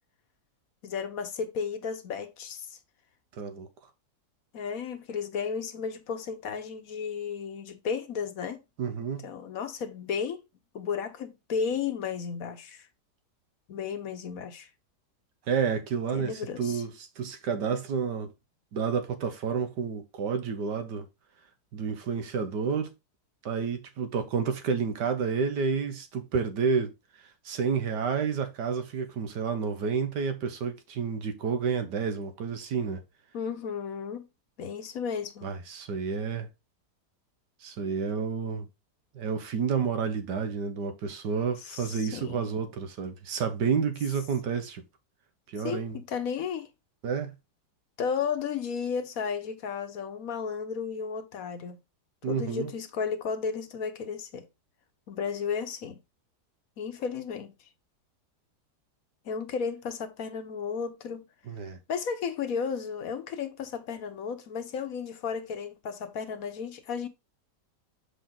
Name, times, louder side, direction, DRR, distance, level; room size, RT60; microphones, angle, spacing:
voice 1, 0.8-2.8 4.5-8.6 9.2-10.4 10.7-12.9 13.7-14.7 16.1-16.8 33.3-34.3 34.6-35.5 41.6-42.5 45.6-46.7 48.0-51.8 52.3-54.5 55.1-56.0 56.8-57.5 59.2-61.2 61.9-67.1, left 6 dB, 60° left, 1.3 m, -33 dB
voice 2, 3.4-3.7 8.8-9.2 15.5-18.3 18.7-21.1 21.7-22.9 23.4-26.9 27.5-33.0 35.4-36.5 37.6-38.7 39.2-44.8 45.5-46.0 47.0-47.3 52.2-52.7 61.5-61.8, right 6 dB, 80° right, 1.7 m, -30 dB
6.7 x 5.0 x 3.8 m
omnidirectional pair, 1.8 m